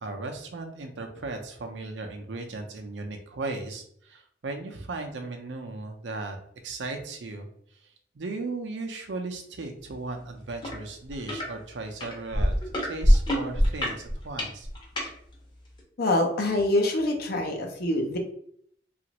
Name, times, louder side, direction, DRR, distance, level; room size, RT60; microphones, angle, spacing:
voice 1, 0.0-6.4 6.6-7.5 8.1-12.6 12.8-14.7, right 3 dB, 85° right, 5 dB, 0.6 m, -36 dB
sound 1, 10.6-10.8 11.1-11.5 12.0-15.1 15.8-15.9, equal, 25° left, 0.8 m, -23 dB
voice 2, 16.0-18.2, left 1 dB, 60° left, 2 dB, 0.6 m, -25 dB
3.0 x 2.5 x 2.9 m, 0.65 s
head